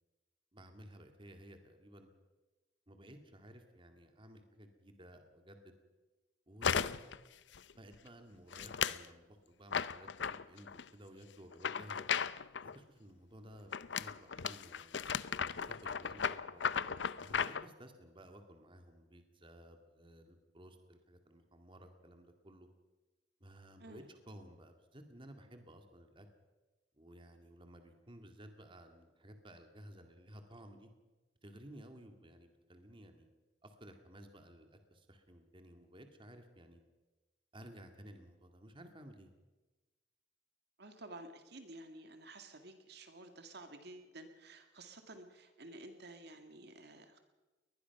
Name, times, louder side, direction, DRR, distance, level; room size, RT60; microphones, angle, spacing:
voice 1, 0.5-2.1 2.9-5.7 6.5-7.0 7.7-12.1 12.6-16.6 17.2-22.7 23.4-26.3 27.0-30.9 31.4-33.3 33.6-36.8 37.5-39.3, right 1 dB, 30° right, 5 dB, 2.1 m, -56 dB
sound 1, 6.6-7.2 7.5-7.9 8.5-9.1 9.7-10.8 11.5-12.8 13.7-17.7, left 7 dB, 75° left, 0.6 m, -36 dB
voice 2, 40.8-47.2, right 2 dB, 60° right, 6 dB, 2.1 m, -52 dB
22.5 x 20.5 x 5.9 m, 1.2 s
head